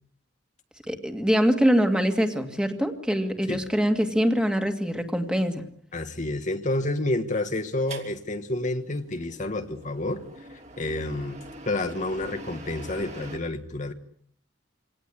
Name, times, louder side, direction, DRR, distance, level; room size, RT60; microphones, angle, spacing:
voice 1, 0.9-5.6, equal, 5° right, 6 dB, 2.2 m, -24 dB
voice 2, 5.9-10.2 10.5-11.4 11.6-13.9, left 2 dB, 40° left, 7 dB, 1.6 m, -29 dB
sound 1, 7.9-13.4, right 1 dB, 40° right, 3.4 m, -44 dB
25.5 x 18.0 x 9.9 m, 0.66 s
head